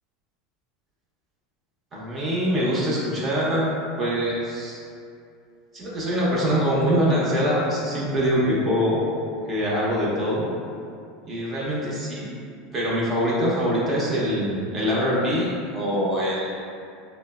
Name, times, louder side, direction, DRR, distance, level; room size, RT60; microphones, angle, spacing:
voice 1, 1.9-3.7 4.0-4.8 5.7-9.0 9.5-10.4 11.2-12.3 12.7-16.5, equal, 35° right, -6 dB, 0.7 m, -24 dB
3.2 x 2.0 x 2.2 m, 2.4 s
supercardioid pair, 110°, 0 cm